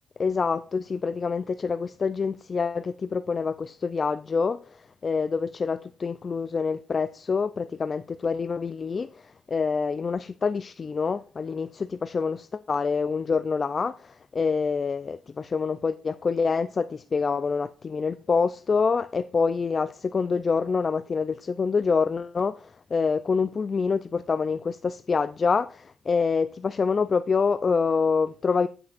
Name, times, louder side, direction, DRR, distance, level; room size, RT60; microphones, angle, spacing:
voice 1, 0.2-28.7, left 5 dB, 40° left, 0.4 m, -26 dB
17.5 x 6.1 x 2.5 m
cardioid pair, 80°, 0 cm